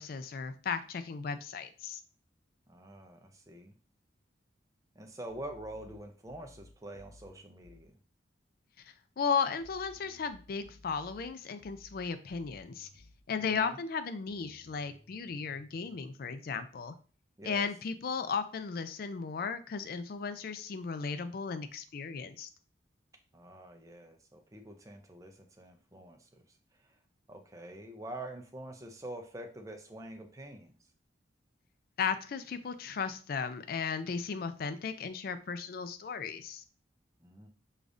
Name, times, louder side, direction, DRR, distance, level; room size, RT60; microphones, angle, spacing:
voice 1, 0.0-2.0 8.9-12.9 13.3-16.9 17.4-22.5 32.0-36.6, left 5 dB, 50° left, 10 dB, 0.3 m, -35 dB
voice 2, 2.7-3.8 4.9-8.0 13.4-13.8 17.4-17.6 23.3-26.4 26.8-27.0 27.3-30.7 37.2-37.5, right 1 dB, 15° right, 4 dB, 0.4 m, -46 dB
sound 1, 5.3-7.9 9.6-13.2 14.3-15.9, left 2 dB, 65° left, 0.9 m, -58 dB
5.0 x 2.4 x 2.6 m, 0.37 s
head